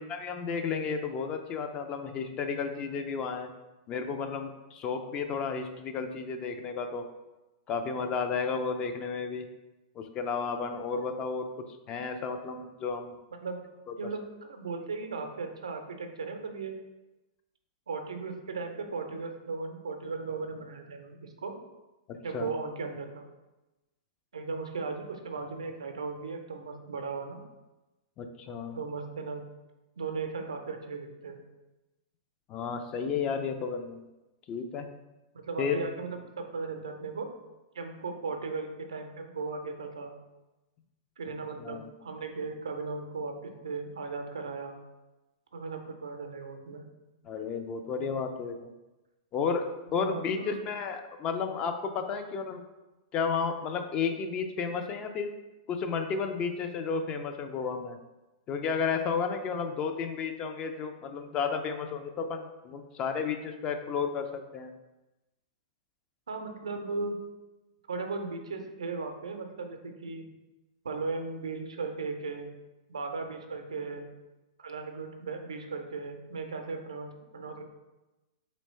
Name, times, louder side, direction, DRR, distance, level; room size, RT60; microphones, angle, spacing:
voice 1, 0.1-3.5 3.9-7.0 7.7-9.4 10.0-11.5 11.9-13.1 22.3-22.5 28.2-28.8 32.5-34.0 34.5-34.9 35.6-35.8 41.6-41.9 47.2-48.6 49.3-49.6 49.9-52.6 53.1-55.3 55.7-58.0 58.5-64.3 64.5-64.7, left 5 dB, 30° left, 6 dB, 0.4 m, -32 dB
voice 2, 13.9-16.7 17.9-21.5 22.2-23.3 24.3-27.4 28.7-29.4 30.0-31.4 35.3-37.3 37.7-40.1 41.2-44.8 45.5-46.9 50.0-50.7 66.3-67.2 67.9-70.3 70.8-72.5 72.9-74.1 74.6-77.6, right 4 dB, 75° right, 5 dB, 0.5 m, -37 dB
3.2 x 3.0 x 4.1 m, 1.1 s
figure-of-eight pair, 105°, 3 cm